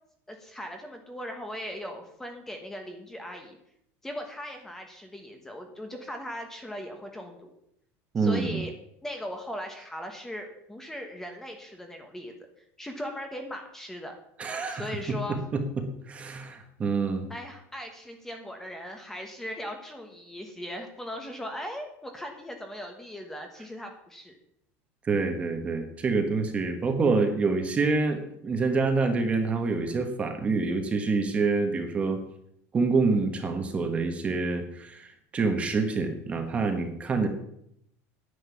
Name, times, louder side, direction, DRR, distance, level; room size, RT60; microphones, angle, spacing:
voice 1, 0.3-3.6 4.0-7.6 8.2-8.7 9.0-12.3 12.8-14.1 14.7-15.4 17.3-24.3, equal, 5° left, 4 dB, 1.3 m, -39 dB
voice 2, 8.1-8.6 14.4-15.2 15.5-17.3 25.0-32.2 32.7-37.3, right 4 dB, 15° right, 6 dB, 1.3 m, -27 dB
9.8 x 9.7 x 7.1 m, 0.75 s
cardioid pair, 175°, 7 cm